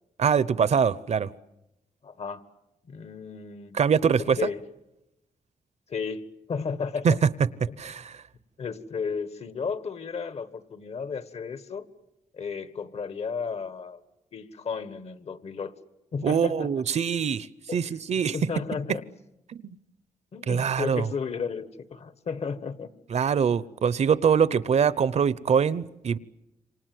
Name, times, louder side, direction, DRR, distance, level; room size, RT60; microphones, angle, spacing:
voice 1, 0.2-1.3 3.7-4.4 7.0-7.1 7.6-8.2 16.2-17.5 17.7-18.4 19.5-19.6 20.5-21.1 23.1-26.2, right 7 dB, 60° right, 0.9 m, -23 dB
voice 2, 2.0-2.4 2.9-3.8 4.2-4.6 5.9-7.2 7.7-7.8 8.6-11.9 12.3-14.0 14.3-15.7 16.1-16.8 17.7-17.8 18.3-19.0 20.3-22.9, left 5 dB, 55° left, 1.6 m, -33 dB
27.5 x 25.0 x 7.8 m
cardioid pair, 95°, 13 cm